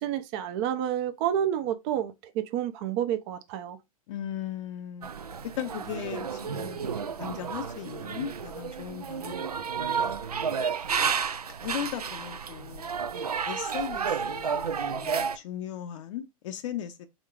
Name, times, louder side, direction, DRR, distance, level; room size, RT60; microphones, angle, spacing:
voice 1, 0.0-3.8, right 10 dB, 45° right, 0.6 m, -29 dB
voice 2, 4.1-5.1 5.4-10.2 10.7-10.9 11.6-12.9 13.4-17.1, left 10 dB, 55° left, 0.6 m, -38 dB
sound 1, 5.0-15.4, right 6 dB, 90° right, 0.4 m, -31 dB
5.0 x 3.6 x 2.4 m
figure-of-eight pair, 95°, 19 cm